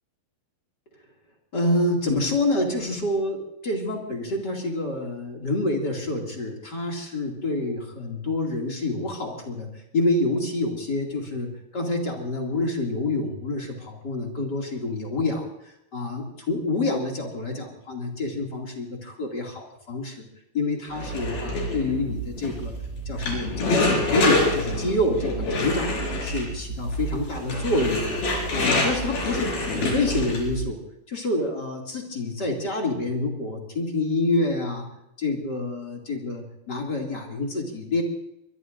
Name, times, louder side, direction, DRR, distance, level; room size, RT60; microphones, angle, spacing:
voice 1, 1.5-9.7 9.9-15.5 15.9-20.2 20.5-22.7 23.1-25.9 26.2-28.1 28.5-30.8 31.1-34.9 35.2-38.0, left 2 dB, 30° left, 0 dB, 2.5 m, -27 dB
sound 1, 20.9-30.6, left 1 dB, 75° left, 6.5 m, -26 dB
24.5 x 22.0 x 2.6 m, 0.83 s
omnidirectional pair, 4.4 m